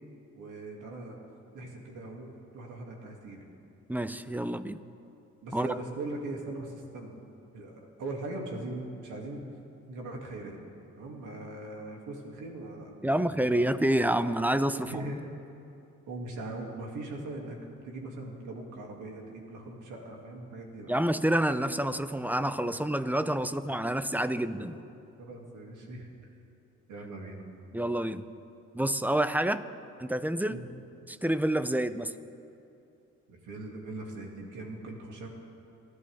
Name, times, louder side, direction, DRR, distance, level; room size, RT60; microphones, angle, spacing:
voice 1, 0.3-1.2 1.5-3.5 5.4-7.1 7.5-9.4 9.9-10.6 10.9-13.7 14.8-15.3 16.1-20.9 22.6-22.7 23.2-24.8 25.2-26.1 26.9-27.5 30.5-30.6 33.3-35.3, right 2 dB, 80° right, 0 dB, 2.7 m, -41 dB
voice 2, 3.9-4.8 5.5-5.8 13.0-14.9 20.9-24.8 27.7-28.3 28.7-29.6 30.0-30.6 31.1-32.1, right 1 dB, 5° right, 12 dB, 0.6 m, -28 dB
29.5 x 11.0 x 3.6 m, 2.7 s
cardioid pair, 90°, 30 cm